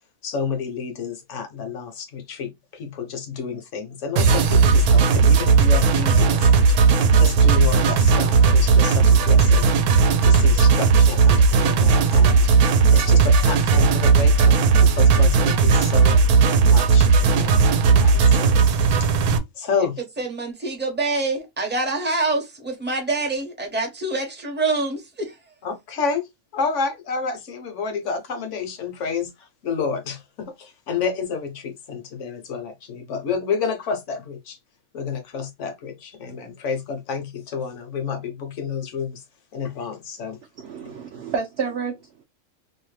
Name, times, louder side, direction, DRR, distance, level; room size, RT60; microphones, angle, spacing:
voice 1, 0.2-9.7 10.2-12.5 12.9-16.2 16.6-20.0 25.6-34.6 34.9-39.2 39.5-40.4, left 5 dB, 65° left, 0.9 m, -30 dB
sound 1, 4.2-19.4, right 4 dB, 85° right, 1.1 m, -16 dB
voice 2, 20.2-25.3, right 3 dB, 15° right, 0.4 m, -26 dB
voice 3, 40.6-42.2, right 5 dB, 70° right, 0.6 m, -30 dB
2.7 x 2.1 x 3.1 m
omnidirectional pair, 1.5 m